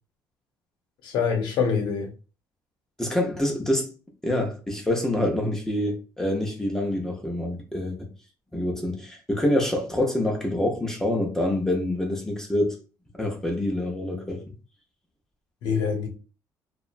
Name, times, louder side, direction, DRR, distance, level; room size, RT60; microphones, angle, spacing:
voice 1, 1.0-2.1 15.6-16.1, left 6 dB, 75° left, 0.7 m, -25 dB
voice 2, 3.0-3.9 4.2-8.1 8.5-12.8 13.2-14.4, left 1 dB, 5° left, 0.5 m, -26 dB
2.8 x 2.2 x 2.4 m
cardioid pair, 155°, 8 cm